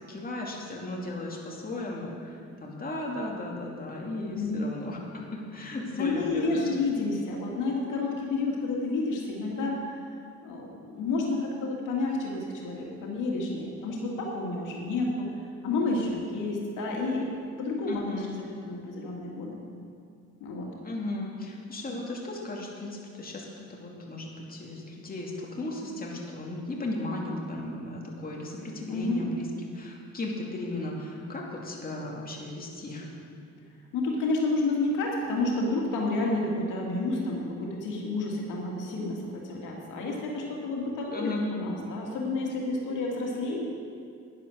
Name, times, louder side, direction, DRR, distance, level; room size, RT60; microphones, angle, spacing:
voice 1, 0.0-5.2 5.5-6.6 17.9-18.4 20.8-29.4 29.7-33.1 41.1-41.4, left 2 dB, 30° left, -2 dB, 2.6 m, -36 dB
voice 2, 6.0-9.8 10.4-15.3 15.6-17.3 17.6-18.3 18.6-19.6 20.4-20.7 28.9-29.2 33.9-43.6, left 3 dB, 85° left, -2 dB, 2.2 m, -30 dB
10.5 x 10.5 x 6.5 m, 2.3 s
cardioid pair, 90°, 30 cm